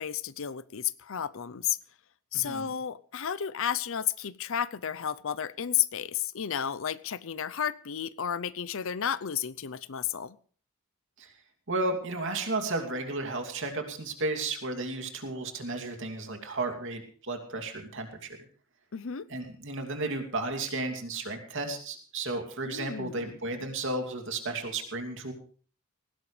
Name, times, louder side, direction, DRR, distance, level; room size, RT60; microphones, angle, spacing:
voice 1, 0.0-1.8 2.3-10.4 18.9-19.3 22.6-23.4, left 9 dB, 65° left, 17 dB, 0.6 m, -32 dB
voice 2, 11.7-18.3 19.3-25.3, right 2 dB, 60° right, 4 dB, 2.8 m, -33 dB
18.5 x 16.5 x 3.3 m, 0.44 s
head